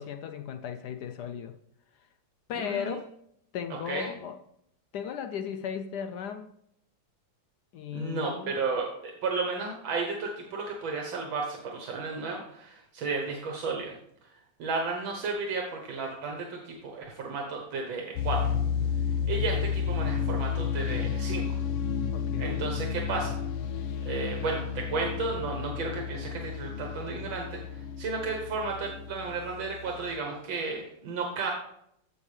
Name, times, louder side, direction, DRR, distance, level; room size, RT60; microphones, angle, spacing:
voice 1, 0.0-1.5 2.5-3.1 3.5-4.4 4.9-6.5 7.7-8.6 22.1-22.7, left 8 dB, 70° left, 7 dB, 1.0 m, -36 dB
voice 2, 2.5-3.0 3.7-4.1 7.9-14.0 14.6-18.4 19.1-21.5 22.4-23.4 24.1-31.5, right 4 dB, 75° right, 1 dB, 1.9 m, -33 dB
sound 1, 18.2-30.2, left 7 dB, 85° left, 1.6 m, -32 dB
15.0 x 5.4 x 3.3 m, 0.73 s
omnidirectional pair, 2.2 m